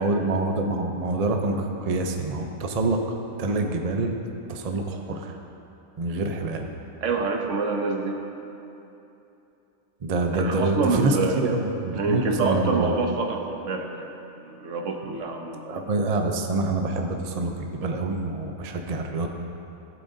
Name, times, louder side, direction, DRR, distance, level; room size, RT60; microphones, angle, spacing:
voice 1, 0.0-3.0 3.4-4.1 4.5-5.4 6.0-6.7 10.0-12.9 15.1-15.2 15.7-19.3, right 2 dB, 40° right, 3 dB, 0.5 m, -26 dB
voice 2, 7.0-8.2 10.3-11.4 11.9-15.6, right 3 dB, 65° right, 2 dB, 1.2 m, -27 dB
17.5 x 7.6 x 2.7 m, 2.9 s
omnidirectional pair, 1.5 m